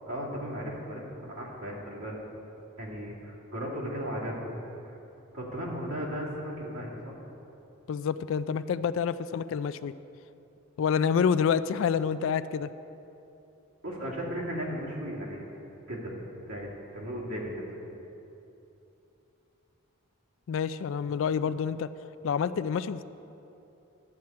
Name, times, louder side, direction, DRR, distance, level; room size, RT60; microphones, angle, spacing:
voice 1, 0.0-2.2 2.8-4.5 4.8-5.0 5.3-7.1 13.8-15.4 15.9-16.2 16.5-17.6, equal, 70° right, -5 dB, 2.4 m, -36 dB
voice 2, 7.9-9.9 10.8-12.7 20.5-21.9 22.2-23.0, left 7 dB, 65° left, 14 dB, 0.3 m, -28 dB
12.0 x 4.5 x 8.5 m, 2.9 s
head